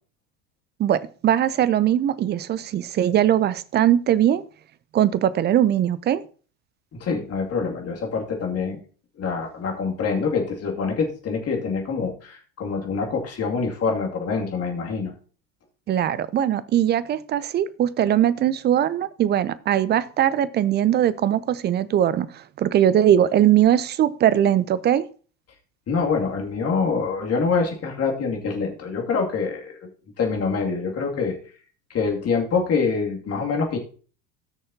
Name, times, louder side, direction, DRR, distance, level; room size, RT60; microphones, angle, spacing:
voice 1, 0.8-4.4 4.9-6.2 15.9-25.0, right 11 dB, 25° right, 17 dB, 0.5 m, -20 dB
voice 2, 6.9-8.8 9.2-15.1 25.9-29.9 30.2-31.4 31.9-33.8, left 5 dB, 35° left, 1 dB, 2.4 m, -25 dB
17.5 x 6.4 x 2.8 m, 0.40 s
figure-of-eight pair, 75°, 44 cm